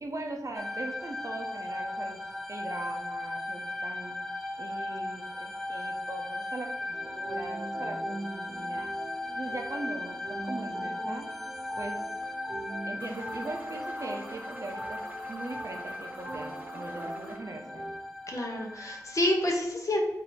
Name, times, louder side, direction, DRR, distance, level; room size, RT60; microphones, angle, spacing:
voice 1, 0.0-2.2 2.5-4.2 4.6-8.9 9.4-11.3 11.8-12.0 12.8-15.0 15.3-17.9, right 2 dB, 50° right, 3 dB, 0.7 m, -40 dB
sound 1, 0.5-19.4, left 2 dB, 5° left, 0.6 m, -37 dB
sound 2, 6.9-18.0, right 2 dB, 85° right, 1.0 m, -42 dB
sound 3, 13.0-17.4, right 1 dB, 25° right, 1.0 m, -48 dB
voice 2, 18.3-20.0, left 1 dB, 55° left, 0 dB, 1.0 m, -28 dB
4.2 x 2.7 x 4.3 m, 0.89 s
wide cardioid pair, 65°, 7 cm